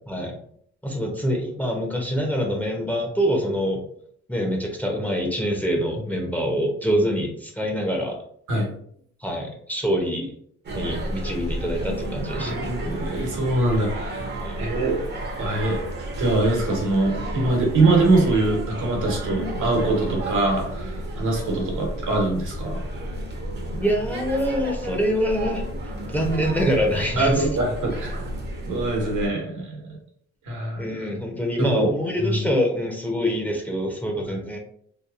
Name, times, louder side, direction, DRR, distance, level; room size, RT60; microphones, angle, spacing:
voice 1, 0.8-3.8 4.3-8.2 9.2-10.3 10.7-12.7 14.4-14.6 23.7-25.6 26.1-27.5 30.8-34.6, equal, 5° left, 0 dB, 0.6 m, -25 dB
sound 1, 10.6-29.3, right 1 dB, 35° right, 0.6 m, -31 dB
voice 2, 12.4-14.3 14.6-15.0 15.4-22.9 27.2-28.2 28.7-30.0 30.4-31.1 31.6-31.9 32.2-32.5 34.3-34.4, right 2 dB, 80° right, 0 dB, 1.1 m, -23 dB
2.9 x 2.4 x 2.4 m, 0.64 s
cardioid pair, 90°, 30 cm